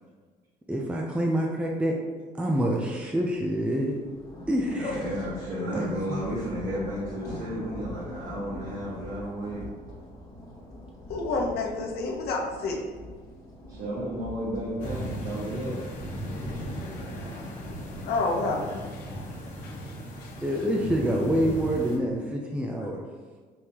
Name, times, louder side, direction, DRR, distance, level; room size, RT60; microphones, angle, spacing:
voice 1, 0.7-1.9 2.3-4.0 4.5-5.0 5.7-6.2 19.1-19.2 20.4-23.0, equal, 5° right, -1 dB, 0.4 m, -27 dB
sound 1, 3.4-20.7, equal, 20° left, 1.2 m, -43 dB
voice 2, 4.7-9.6 13.7-15.8, equal, 55° right, -9 dB, 1.5 m, -33 dB
voice 3, 11.1-12.8 18.0-19.2 19.6-19.9 20.2-20.4, left 3 dB, 70° left, 0 dB, 0.8 m, -30 dB
sound 2, 14.8-22.0, equal, 50° left, 1.1 m, -37 dB
4.7 x 3.5 x 2.9 m, 1.5 s
cardioid pair, 110°, 17 cm